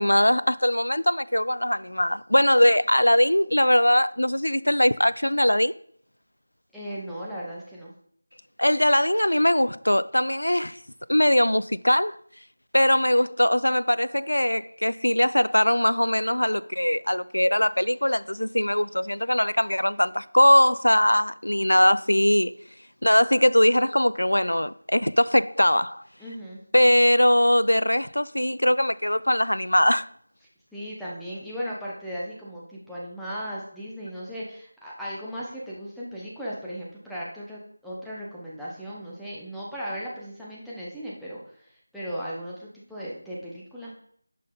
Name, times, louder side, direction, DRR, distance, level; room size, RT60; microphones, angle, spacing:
voice 1, 0.0-5.7 8.6-10.8 11.1-12.2 12.7-22.5 23.0-26.0 26.7-30.1, left 1 dB, 90° left, 0.4 m, -21 dB
voice 2, 6.7-7.9 26.2-26.6 30.7-43.9, equal, ahead, 1.1 m, -36 dB
11.5 x 5.3 x 4.0 m
figure-of-eight pair, 170°, 0 cm